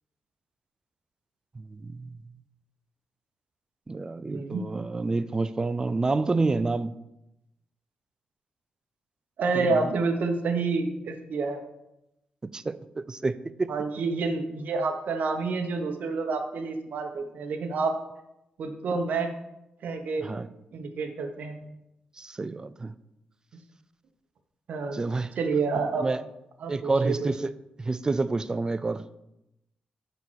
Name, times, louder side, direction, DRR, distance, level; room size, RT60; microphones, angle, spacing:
voice 1, 1.5-2.1 3.9-6.9 9.5-9.9 12.4-13.7 20.2-20.5 22.2-22.9 24.9-25.3 26.0-26.2 26.7-27.5 27.8-29.0, right 3 dB, 25° right, 14 dB, 0.4 m, -28 dB
voice 2, 4.3-4.7 9.4-11.6 13.7-18.0 18.6-19.3 19.8-20.3 20.7-21.6 24.7-25.0 25.4-26.1 26.6-27.2, right 4 dB, 70° right, 5 dB, 1.1 m, -28 dB
7.0 x 5.5 x 6.3 m, 0.87 s
cardioid pair, 100°, 3 cm